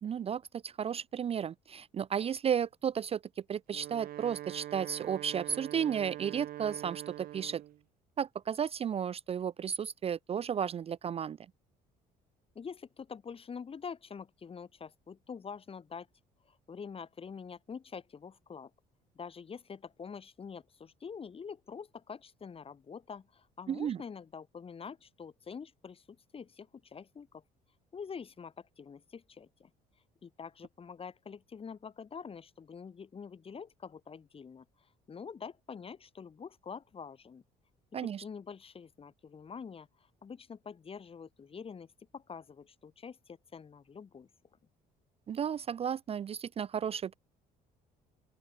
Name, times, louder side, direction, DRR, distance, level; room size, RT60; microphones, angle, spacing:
voice 1, 0.0-7.6 8.2-11.4 23.7-24.0 37.9-38.2 45.3-47.1, right 8 dB, 35° right, 0.5 m, -33 dB
Wind instrument woodwind instrument, 3.6-7.8, right 13 dB, 60° right, 0.8 m, -44 dB
voice 2, 12.5-16.1 16.5-18.7 19.2-27.4 27.9-29.7 30.2-34.7 35.1-37.4 38.0-39.9 40.2-41.9 42.1-44.3, left 6 dB, 35° left, 4.0 m, -46 dB
open air
cardioid pair, 110°, 17 cm